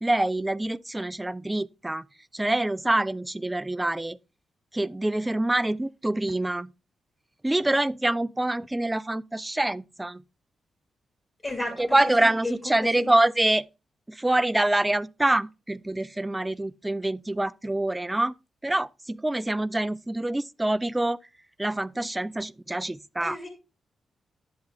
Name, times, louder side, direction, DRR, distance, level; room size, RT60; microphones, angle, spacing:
voice 1, 0.0-2.1 2.3-4.2 4.7-6.7 7.4-10.2 11.8-13.7 14.1-18.3 18.6-21.2 21.6-23.4, right 1 dB, 15° right, 0.3 m, -25 dB
voice 2, 11.4-13.1 23.2-23.5, left 2 dB, 25° left, 2.4 m, -34 dB
10.0 x 7.6 x 2.4 m
cardioid pair, 70°, 0 cm